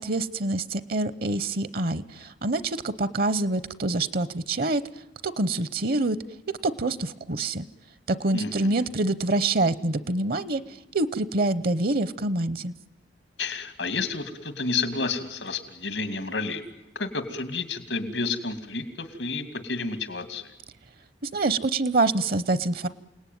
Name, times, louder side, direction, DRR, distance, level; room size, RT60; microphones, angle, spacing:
voice 1, 0.0-4.8 5.2-6.2 6.6-7.7 8.1-10.6 10.9-12.7 21.3-22.9, right 2 dB, 55° right, 16 dB, 0.8 m, -26 dB
voice 2, 8.3-8.9 13.4-16.6 16.9-20.5, left 4 dB, 90° left, 10 dB, 2.6 m, -30 dB
28.5 x 18.5 x 9.4 m, 1.0 s
head